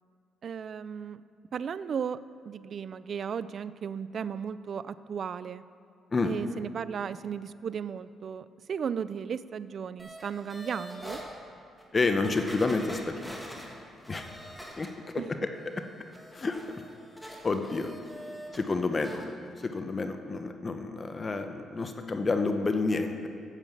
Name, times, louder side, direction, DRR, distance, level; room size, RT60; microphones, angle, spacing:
voice 1, 0.4-1.2 1.5-2.2 2.5-5.6 6.2-11.2 15.2-15.3, right 7 dB, 55° right, 16 dB, 0.3 m, -35 dB
sound 1, 10.0-11.3 11.8-11.9 12.2-15.2 15.5-18.6 18.9-19.3 19.6-19.7, equal, 5° right, 1.6 m, -45 dB
voice 2, 11.9-13.8 14.1-14.3 14.8-14.9 15.1-15.3 16.3-16.6 17.4-17.9 18.5-19.3 19.6-23.3, left 3 dB, 30° left, 7 dB, 0.8 m, -29 dB
9.0 x 7.4 x 7.3 m, 2.3 s
cardioid pair, 90°, 0 cm